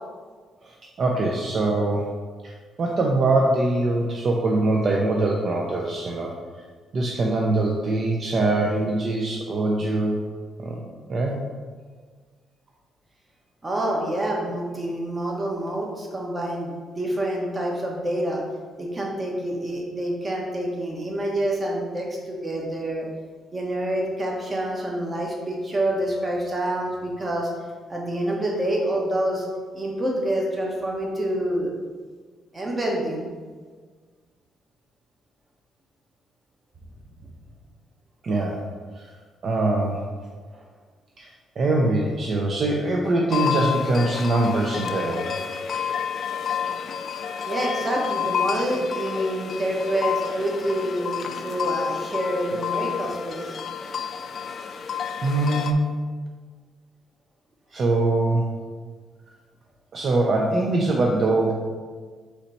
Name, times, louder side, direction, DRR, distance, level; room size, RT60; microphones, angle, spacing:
voice 1, 1.0-2.1 2.4-6.3 6.9-10.2 10.6-10.8 11.1-11.4 38.2-38.6 39.0-39.1 39.4-40.0 41.2-41.3 41.6-45.3 55.2-56.0 57.7-58.5 59.9-61.5, right 2 dB, 50° right, -1 dB, 0.5 m, -23 dB
voice 2, 13.6-18.4 18.8-23.1 23.5-27.5 27.9-29.5 29.7-31.7 32.5-33.3 40.5-40.6 47.5-53.5, right 1 dB, 25° right, -2 dB, 1.1 m, -27 dB
sound 1, 43.3-55.7, left 7 dB, 55° left, 0.3 m, -30 dB
4.1 x 3.2 x 4.0 m, 1.5 s
cardioid pair, 90°, 0 cm